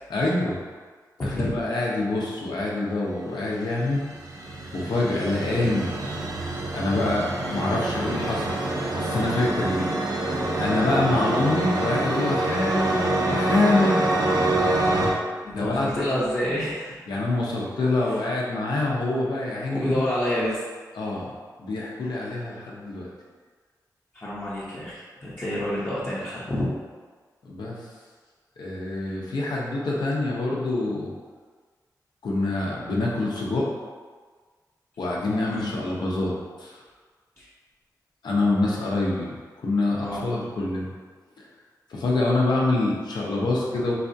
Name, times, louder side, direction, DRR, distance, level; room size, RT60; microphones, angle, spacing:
voice 1, 0.1-0.6 1.2-4.0 4.7-5.9 6.7-8.6 8.9-9.9 10.3-14.1 15.5-16.0 17.1-20.0 21.0-21.3 21.6-23.1 27.4-27.8 28.6-31.1 32.2-33.7 35.0-36.8 38.2-39.3 39.6-40.9 41.9-43.9, left 2 dB, 85° left, -4 dB, 0.7 m, -25 dB
voice 2, 1.2-1.5 15.6-16.9 18.1-18.2 19.7-20.6 24.1-26.7 35.5-35.7 37.4-37.5 40.0-40.3, left 1 dB, 30° left, -10 dB, 0.7 m, -28 dB
sound 1, 3.5-15.1, right 2 dB, 60° right, 0.5 m, -26 dB
4.0 x 2.3 x 2.7 m, 1.5 s
wide cardioid pair, 85°, 7 cm